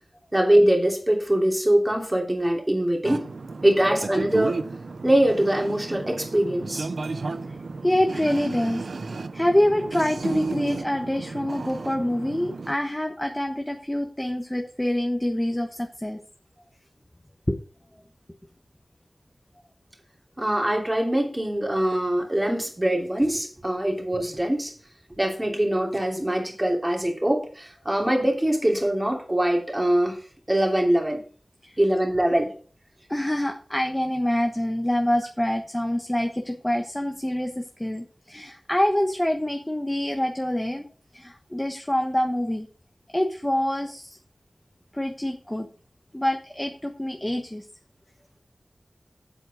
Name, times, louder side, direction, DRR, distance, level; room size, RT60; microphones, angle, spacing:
voice 1, 0.3-3.3 3.6-4.7 5.0-6.9 20.4-24.7 25.2-30.2 30.5-31.2 31.8-32.5, right 1 dB, 20° right, 3.0 m, -23 dB
sound 1, 3.0-12.7, right 3 dB, 90° right, 0.6 m, -33 dB
voice 2, 7.8-8.9 9.3-16.2 17.5-17.6 31.6-31.8 33.1-40.9 41.1-42.7 43.1-44.2 44.9-45.7 46.1-47.6, left 1 dB, 15° left, 1.2 m, -26 dB
8.1 x 7.8 x 4.9 m
wide cardioid pair, 65°, 0 cm